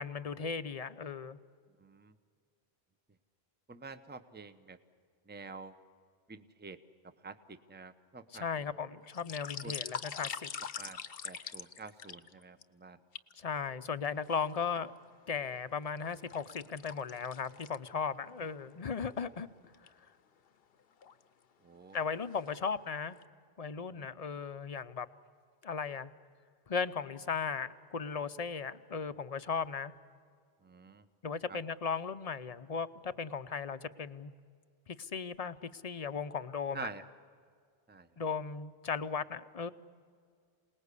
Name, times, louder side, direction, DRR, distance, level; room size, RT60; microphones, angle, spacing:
voice 1, 0.0-1.4 8.3-10.5 13.4-14.9 15.3-19.5 21.9-23.2 23.6-25.1 25.6-26.1 26.7-29.9 31.2-34.3 34.9-36.9 38.2-39.7, left 6 dB, 40° left, 13 dB, 0.7 m, -36 dB
voice 2, 1.8-2.1 3.7-4.8 5.3-5.7 6.3-6.8 7.2-8.5 9.6-9.7 10.8-11.0 11.2-13.0 21.6-22.0 23.9-24.1 30.6-31.0 31.5-31.6 36.7-37.0 37.9-38.1, right 4 dB, 10° right, 10 dB, 0.8 m, -47 dB
sound 1, 9.0-12.6 13.1-13.3 14.0-14.8 15.3-18.2 18.5-18.6 19.1-19.2 19.6-19.9 20.7-21.2 21.7-22.0 22.3-22.9 23.2-23.3, left 7 dB, 65° left, 1.0 m, -43 dB
27.5 x 19.5 x 8.3 m, 2.2 s
omnidirectional pair, 1.1 m